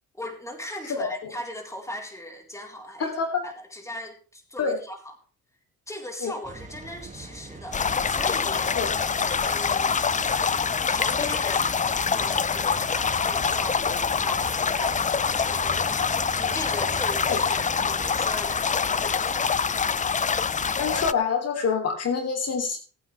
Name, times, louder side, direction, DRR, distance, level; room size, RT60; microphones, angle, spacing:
voice 1, 0.1-3.1 3.4-5.0 5.9-8.8 9.4-10.0 10.9-19.5, left 1 dB, 10° left, 2 dB, 4.0 m, -39 dB
voice 2, 0.9-1.3 3.0-3.4 4.6-4.8 6.2-6.3 8.7-8.9 17.3-17.4 20.8-22.8, left 5 dB, 55° left, 5 dB, 3.1 m, -26 dB
Rain, 6.4-18.1, right 3 dB, 25° right, 2.2 m, -42 dB
sound 1, 7.7-21.1, left 6 dB, 25° left, 0.6 m, -25 dB
20.5 x 9.1 x 3.4 m, 0.36 s
cardioid pair, 90°, 30 cm